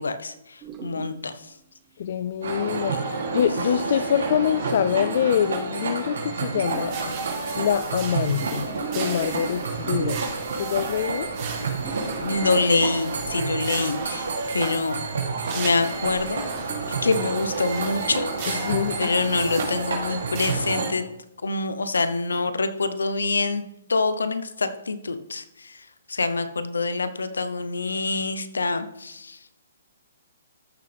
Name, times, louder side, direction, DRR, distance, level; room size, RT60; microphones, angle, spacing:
voice 1, 0.0-1.5 2.9-3.0 12.2-14.3 14.5-15.0 15.5-16.4 16.9-18.7 19.0-21.0 21.4-23.6 23.9-29.4, left 3 dB, 90° left, 11 dB, 0.9 m, -26 dB
sound 1, 0.6-1.5 2.1-2.2 4.7-4.8 6.4-7.1 8.1-10.5 11.1-11.4 11.7-13.0 14.5-14.7 15.2-15.6 16.0-16.1 16.5-17.0, right 7 dB, 20° right, 1.0 m, -39 dB
voice 2, 2.0-7.1 7.6-8.7 8.9-10.2 10.6-11.3 18.6-19.1, left 9 dB, 55° left, 12 dB, 0.4 m, -25 dB
sound 2, 2.4-20.9, right 4 dB, 75° right, 3.0 m, -29 dB
sound 3, 6.7-20.7, right 5 dB, 35° right, 3.1 m, -39 dB
13.5 x 6.8 x 3.5 m, 0.83 s
hypercardioid pair, 145°, 0 cm